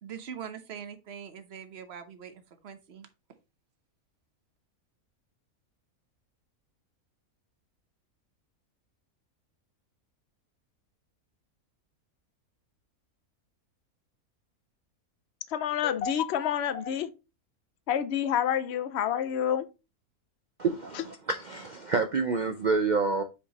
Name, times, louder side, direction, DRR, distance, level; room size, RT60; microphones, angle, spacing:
voice 1, 0.0-3.1, right 8 dB, 50° right, 1.1 m, -43 dB
voice 2, 15.5-17.1 17.9-19.7 20.9-21.0, left 9 dB, 60° left, 0.8 m, -28 dB
voice 3, 20.6-23.2, right 4 dB, 80° right, 0.4 m, -28 dB
5.6 x 4.9 x 4.0 m
omnidirectional pair, 1.5 m